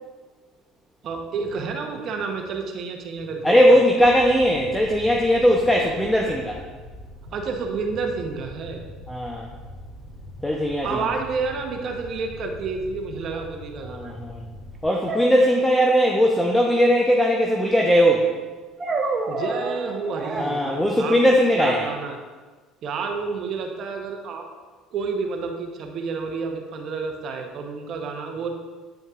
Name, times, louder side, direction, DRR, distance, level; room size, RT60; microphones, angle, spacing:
voice 1, 1.0-3.8 7.3-8.8 10.8-14.1 19.3-21.2 21.6-22.2 22.8-24.5 24.9-28.5, right 4 dB, 55° right, 3 dB, 0.9 m, -30 dB
voice 2, 3.4-6.6 9.1-9.5 10.4-11.0 13.8-14.4 14.8-18.3 20.4-21.9, equal, 5° left, 0 dB, 0.7 m, -19 dB
Fire, 4.0-14.8, left 1 dB, 90° left, 1.0 m, -42 dB
sound 1, 13.3-13.4 15.1-16.0 18.8-20.5, right 2 dB, 30° right, 0.9 m, -28 dB
9.2 x 5.2 x 2.5 m, 1.4 s
supercardioid pair, 95°, 0 cm